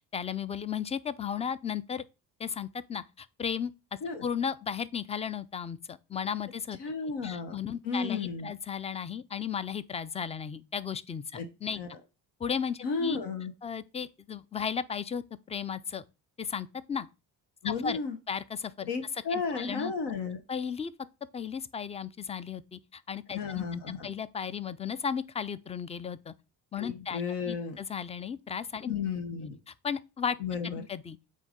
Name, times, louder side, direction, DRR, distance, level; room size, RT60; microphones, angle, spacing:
voice 1, 0.1-2.0 2.4-6.8 7.2-11.8 12.4-13.2 13.6-16.0 16.4-17.1 17.6-18.0 18.3-18.9 19.3-19.9 20.5-20.9 21.3-23.7 24.0-26.3 26.7-28.9 29.3-30.4 30.6-31.2, left 7 dB, 15° left, 0.4 m, -35 dB
voice 2, 6.8-7.6 7.8-8.5 11.3-11.5 11.8-12.0 12.8-13.5 17.6-18.2 18.9-20.4 23.3-24.1 26.8-27.8 28.9-29.6 30.4-30.9, left 5 dB, 70° left, 1.2 m, -33 dB
8.4 x 2.8 x 5.1 m
cardioid pair, 95°, 43 cm